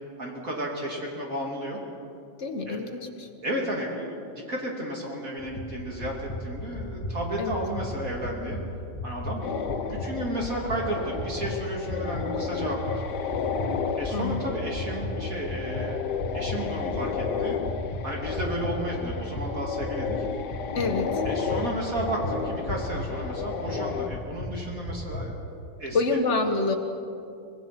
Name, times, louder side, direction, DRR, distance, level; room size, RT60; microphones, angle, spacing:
voice 1, 0.2-1.8 2.7-2.9 3.4-8.6 9.0-9.4 9.9-13.0 14.0-16.0 16.3-17.6 18.0-20.2 21.2-25.4 25.8-26.0, right 1 dB, 45° right, -1 dB, 3.1 m, -33 dB
voice 2, 2.4-3.3 7.4-7.6 14.1-14.4 20.8-21.2 25.9-26.8, left 3 dB, 35° left, 4 dB, 1.8 m, -27 dB
sound 1, 5.4-25.2, left 1 dB, 15° left, 1.9 m, -36 dB
sound 2, 9.4-24.1, left 6 dB, 60° left, 1.5 m, -32 dB
24.5 x 20.5 x 6.0 m, 2.6 s
omnidirectional pair, 2.2 m